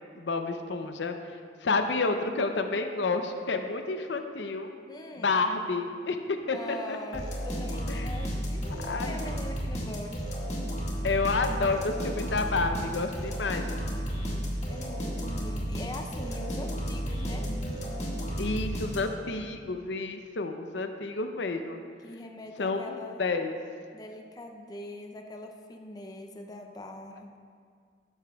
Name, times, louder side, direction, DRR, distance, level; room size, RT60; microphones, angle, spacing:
voice 1, 0.1-1.1 1.6-4.7 5.2-7.2 7.9-8.1 8.8-9.1 11.0-13.7 18.4-21.8 22.6-23.6, left 3 dB, 70° left, 6 dB, 0.6 m, -30 dB
voice 2, 4.9-5.4 6.5-10.2 14.7-17.5 22.0-23.2 23.9-27.4, left 1 dB, 20° left, 3 dB, 0.5 m, -42 dB
sound 1, 7.1-19.3, equal, 35° left, 1.8 m, -33 dB
13.0 x 10.5 x 2.3 m, 2.1 s
head